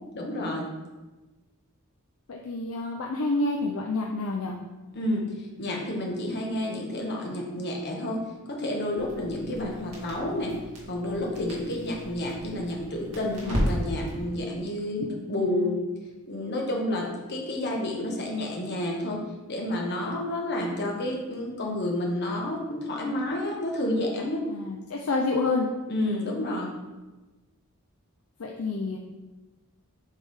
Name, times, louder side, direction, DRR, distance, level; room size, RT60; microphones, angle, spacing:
voice 1, 0.1-0.7 4.9-8.2 8.5-10.5 10.9-15.8 16.3-19.2 19.5-24.4 25.9-26.7, left 1 dB, 50° left, -1 dB, 1.3 m, -30 dB
voice 2, 2.3-4.6 15.4-15.8 24.5-25.7 28.4-29.0, left 3 dB, 65° left, 0 dB, 0.6 m, -28 dB
Crackle, 9.0-14.2, equal, 85° right, 2.1 m, -34 dB
8.1 x 3.4 x 3.7 m, 1.1 s
head